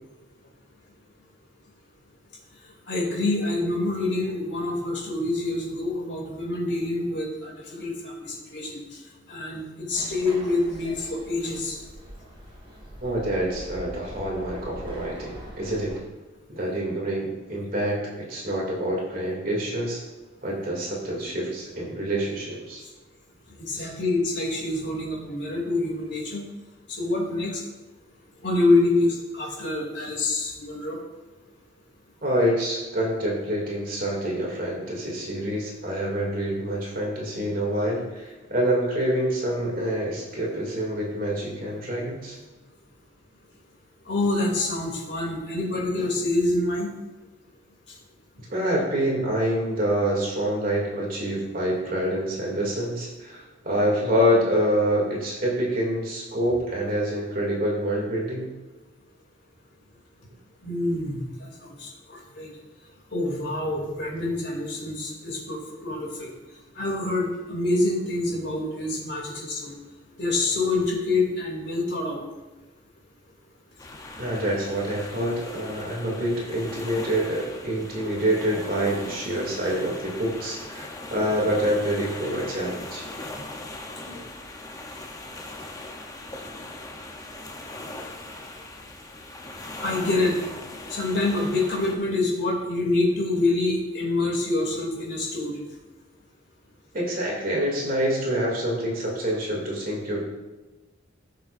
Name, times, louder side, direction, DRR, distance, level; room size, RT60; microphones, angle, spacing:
voice 1, 2.9-8.8 9.3-11.8 23.6-26.5 26.9-27.6 28.4-31.0 44.1-46.9 60.6-62.5 63.1-66.3 66.8-69.7 70.2-72.2 84.1-84.2 89.8-90.4 90.9-95.6, left 2 dB, 60° left, -2 dB, 2.7 m, -26 dB
sound 1, 9.9-16.0, equal, 25° right, 2.2 m, -42 dB
voice 2, 13.0-16.0 16.5-20.0 20.4-22.8 23.7-23.9 32.2-42.4 48.5-58.5 74.2-83.1 96.9-100.2, right 1 dB, 45° right, -3 dB, 2.5 m, -26 dB
sound 2, 73.8-92.0, left 2 dB, 15° left, 0.7 m, -40 dB
15.0 x 6.5 x 2.6 m, 1.1 s
head